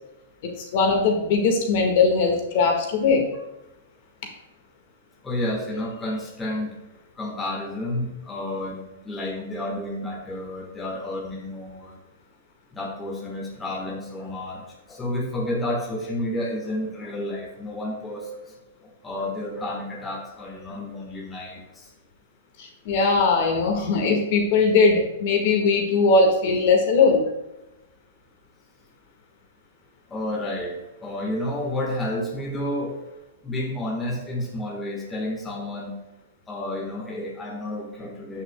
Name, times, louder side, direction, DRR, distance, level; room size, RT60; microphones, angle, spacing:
voice 1, 0.4-3.3 22.6-27.2, left 4 dB, 50° left, 2 dB, 1.7 m, -20 dB
voice 2, 5.2-6.8 7.2-12.0 12.7-18.5 18.8-21.9 30.1-30.7 31.0-32.9 33.4-35.9 36.5-38.4, left 1 dB, 10° left, -3 dB, 1.4 m, -31 dB
14.0 x 5.7 x 2.3 m, 0.96 s
hypercardioid pair, 155°, 0 cm